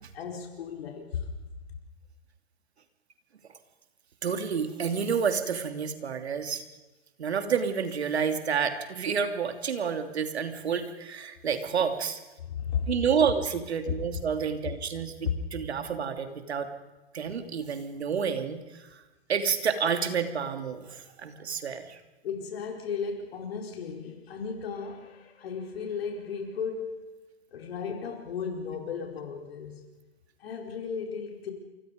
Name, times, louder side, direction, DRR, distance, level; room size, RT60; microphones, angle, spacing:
voice 1, 0.1-1.3 12.4-12.9 22.2-27.1 27.5-29.9 30.4-31.5, left 6 dB, 70° left, 2 dB, 4.7 m, -35 dB
voice 2, 4.2-6.6 7.2-12.2 12.9-16.7 17.1-19.0 19.3-22.0, right 6 dB, 80° right, 7 dB, 3.0 m, -29 dB
29.0 x 24.5 x 5.2 m, 1.1 s
hypercardioid pair, 115°, 32 cm